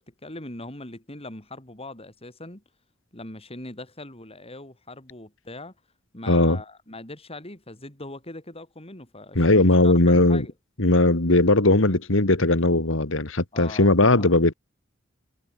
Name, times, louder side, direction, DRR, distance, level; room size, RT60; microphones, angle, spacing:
voice 1, 0.0-2.6 3.1-5.7 6.1-10.5 13.5-14.3, left 2 dB, 30° left, 5.5 m, -41 dB
voice 2, 6.3-6.6 9.4-10.5 10.8-14.5, left 2 dB, 70° left, 2.3 m, -19 dB
head